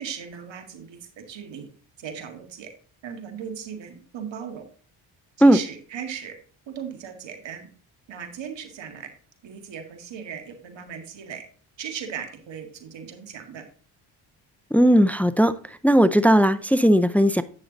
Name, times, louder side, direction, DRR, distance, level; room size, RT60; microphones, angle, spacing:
voice 1, 0.0-1.7 2.0-2.7 3.0-4.7 5.4-6.4 6.7-7.7 8.1-9.1 9.4-11.4 11.8-13.7, right 7 dB, 60° right, 5 dB, 2.0 m, -37 dB
voice 2, 14.7-17.4, equal, 5° left, 14 dB, 0.4 m, -17 dB
8.7 x 6.4 x 3.9 m, 0.43 s
supercardioid pair, 55°, 50 cm